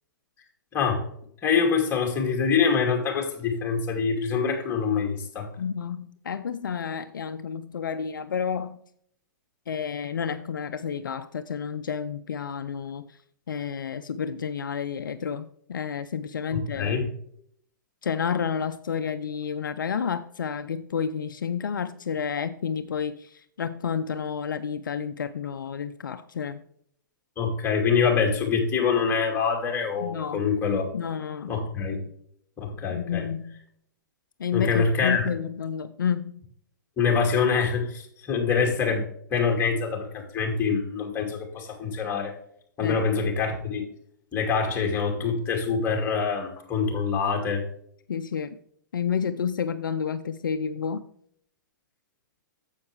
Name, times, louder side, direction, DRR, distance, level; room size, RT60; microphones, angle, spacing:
voice 1, 0.7-1.1 1.4-5.5 16.5-17.1 27.4-30.9 31.5-32.0 32.6-33.3 34.5-35.2 37.0-39.0 39.3-42.3 42.8-43.8 44.3-47.6, left 5 dB, 20° left, 1 dB, 2.6 m, -25 dB
voice 2, 5.6-8.8 9.7-13.2 13.5-17.0 18.0-26.6 30.0-30.4 30.9-31.5 32.9-33.6 34.4-36.4 42.8-43.3 48.1-48.6 48.9-51.1, left 7 dB, 70° left, 10 dB, 0.5 m, -30 dB
9.6 x 7.4 x 3.3 m, 0.66 s
hypercardioid pair, 120°, 11 cm